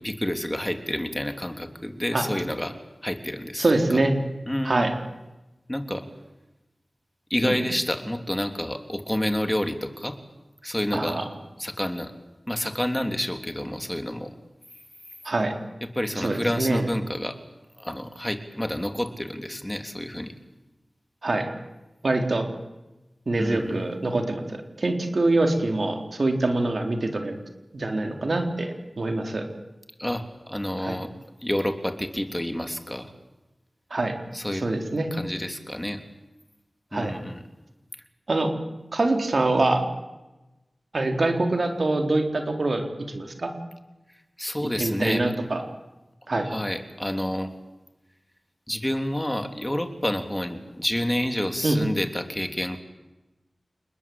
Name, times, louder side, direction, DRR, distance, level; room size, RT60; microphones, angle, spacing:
voice 1, 0.0-2.8 3.0-3.6 3.9-4.0 4.5-4.9 5.7-6.0 7.3-10.2 10.6-11.3 11.6-12.1 12.5-14.3 15.8-17.4 17.8-20.3 23.4-23.8 30.0-31.1 31.4-33.1 34.3-34.6 35.1-36.0 36.9-37.4 44.4-45.3 46.4-47.5 48.7-52.8, left 1 dB, 15° left, 7 dB, 3.3 m, -29 dB
voice 2, 3.6-4.1 4.6-4.9 7.4-7.6 10.9-11.2 15.2-15.5 16.2-16.9 21.2-21.5 22.0-22.5 23.3-27.4 27.7-29.4 30.8-31.0 33.9-34.1 34.6-35.1 36.9-37.1 38.3-38.5 38.9-39.8 40.9-42.8 43.1-43.5 44.8-45.6 46.3-46.5 51.6-51.8, right 2 dB, 60° right, 5 dB, 4.1 m, -24 dB
28.5 x 21.0 x 8.9 m, 1.0 s
wide cardioid pair, 60°, 0 cm